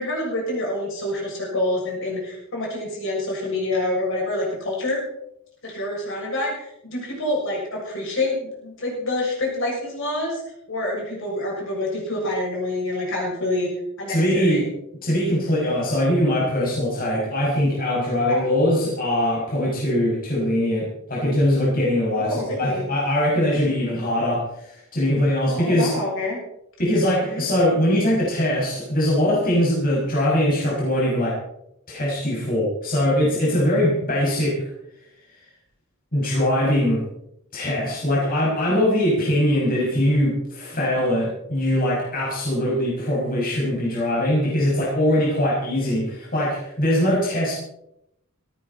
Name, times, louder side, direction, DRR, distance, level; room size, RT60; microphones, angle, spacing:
voice 1, 0.0-5.0 5.6-10.4 10.7-13.7 14.0-14.7 18.3-18.5 22.1-22.9 25.5-26.4 27.2-27.4, left 1 dB, 60° left, -2 dB, 7.3 m, -27 dB
voice 2, 14.1-14.6 15.0-25.9 26.8-31.4 31.9-34.6 36.1-37.0 37.5-47.5, left 1 dB, 40° left, -5 dB, 6.2 m, -21 dB
18.0 x 15.5 x 4.3 m, 0.78 s
head